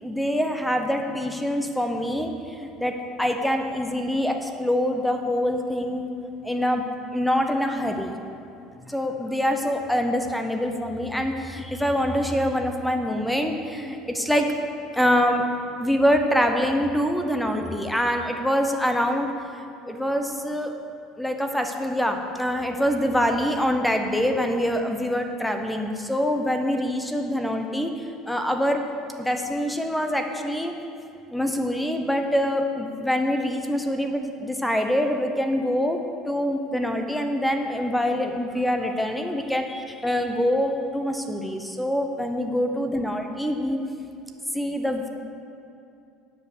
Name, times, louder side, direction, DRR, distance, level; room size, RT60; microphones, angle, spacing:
voice 1, 0.0-6.1 6.4-6.9 7.1-8.1 8.9-14.5 14.9-15.4 15.8-20.7 21.2-28.8 29.2-30.7 31.3-36.0 36.3-43.8 44.5-45.1, equal, 5° left, 5 dB, 0.8 m, -25 dB
9.0 x 5.3 x 6.6 m, 2.6 s
supercardioid pair, 90°, 0 cm